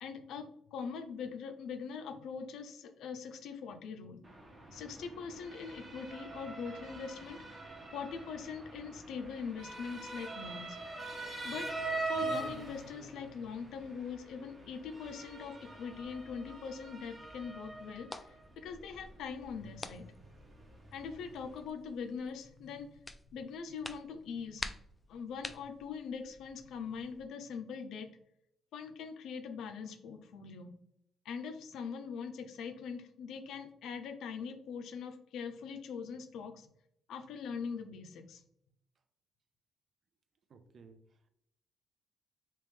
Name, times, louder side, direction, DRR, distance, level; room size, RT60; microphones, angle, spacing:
voice 1, 0.0-4.2 4.7-7.4 7.9-10.8 11.4-11.7 12.0-20.1 20.9-23.0 23.3-24.7 25.1-28.1 28.7-30.7 31.2-36.7 37.1-38.4, left 6 dB, 80° left, 7 dB, 0.5 m, -42 dB
Motor vehicle (road) / Siren, 4.2-21.6, right 2 dB, 35° right, 1.1 m, -44 dB
sound 1, 16.0-27.2, left 2 dB, 15° left, 0.3 m, -50 dB
voice 2, 40.5-41.3, right 4 dB, 50° right, 8 dB, 0.5 m, -58 dB
3.2 x 3.0 x 3.4 m, 0.73 s
cardioid pair, 90°, 0 cm